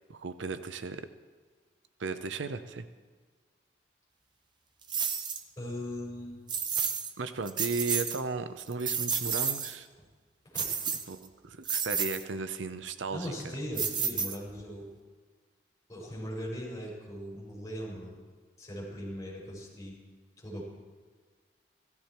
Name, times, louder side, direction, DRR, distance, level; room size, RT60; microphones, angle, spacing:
voice 1, 0.1-1.0 2.0-2.9 7.2-9.9 11.1-13.5, right 4 dB, 85° right, 11 dB, 0.7 m, -35 dB
sound 1, 4.9-5.4 6.5-7.1 7.5-8.2 8.6-9.7 10.5-11.3 11.6-12.2 13.8-14.6, right 6 dB, 25° right, 0.7 m, -31 dB
voice 2, 5.6-6.4 10.4-10.7 13.1-14.9 15.9-18.2 18.6-20.0 20.4-20.6, equal, 20° left, -4 dB, 5.3 m, -39 dB
15.5 x 13.5 x 4.4 m, 1.5 s
head